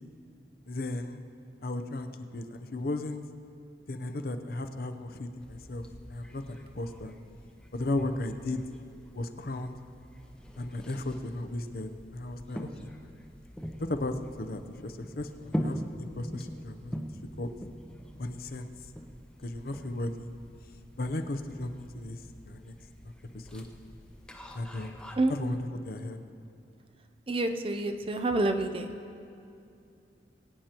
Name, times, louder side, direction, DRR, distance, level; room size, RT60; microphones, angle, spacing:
voice 1, 0.7-1.2 1.6-3.2 3.9-7.1 7.7-8.6 9.1-9.8 10.6-13.1 13.8-17.0 17.4-17.5 18.2-18.7 19.4-20.3 21.0-22.7 23.3-23.6 24.5-24.9 25.3-26.2, left 2 dB, 55° left, 8 dB, 0.7 m, -35 dB
sound 1, 5.4-25.1, equal, 5° left, 0.7 m, -43 dB
voice 2, 27.3-28.9, right 2 dB, 30° right, 7 dB, 0.5 m, -28 dB
22.0 x 9.1 x 3.0 m, 2.6 s
head